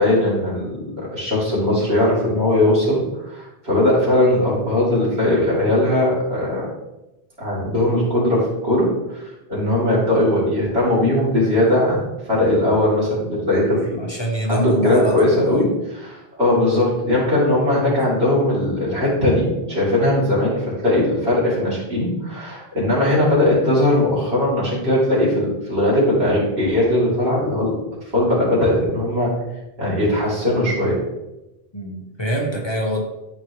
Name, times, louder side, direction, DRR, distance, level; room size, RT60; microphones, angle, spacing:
voice 1, 0.0-6.7 7.4-9.2 9.5-14.1 14.5-27.8 28.1-29.4 29.8-31.0, left 1 dB, 85° right, -7 dB, 3.5 m, -19 dB
voice 2, 14.0-15.6 31.7-33.0, right 1 dB, 25° left, -1 dB, 1.2 m, -25 dB
13.0 x 4.8 x 3.1 m, 0.96 s
omnidirectional pair, 1.0 m